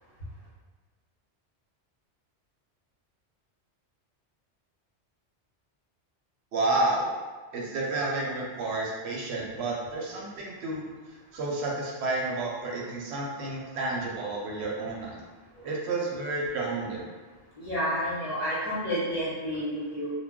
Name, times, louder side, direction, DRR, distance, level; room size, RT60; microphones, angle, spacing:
voice 1, 6.5-7.1 7.5-10.8 11.3-15.2 15.6-17.1, right 2 dB, 75° right, -2 dB, 0.8 m, -30 dB
voice 2, 17.5-20.1, equal, 35° left, -10 dB, 0.8 m, -30 dB
2.3 x 2.2 x 3.5 m, 1.4 s
omnidirectional pair, 1.2 m